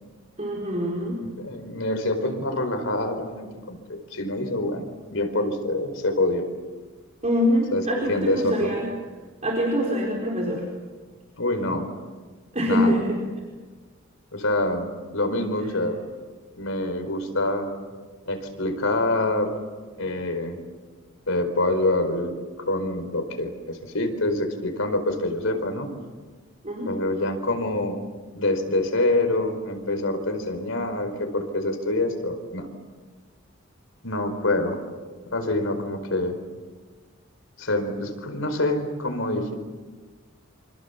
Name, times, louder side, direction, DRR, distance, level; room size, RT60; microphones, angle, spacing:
voice 1, 0.4-1.2 7.2-8.8 9.4-10.6 12.5-13.2 26.6-26.9, equal, 35° right, -1 dB, 4.5 m, -24 dB
voice 2, 1.1-6.5 7.7-8.7 11.4-11.9 12.7-13.0 14.3-16.0 16.6-17.7 18.3-19.5 20.0-20.6 21.3-22.3 22.7-25.9 26.9-28.0 28.3-32.7 34.0-34.8 35.3-36.4 37.6-39.6, left 2 dB, 85° left, 6 dB, 4.7 m, -26 dB
28.0 x 27.0 x 7.2 m, 1.4 s
head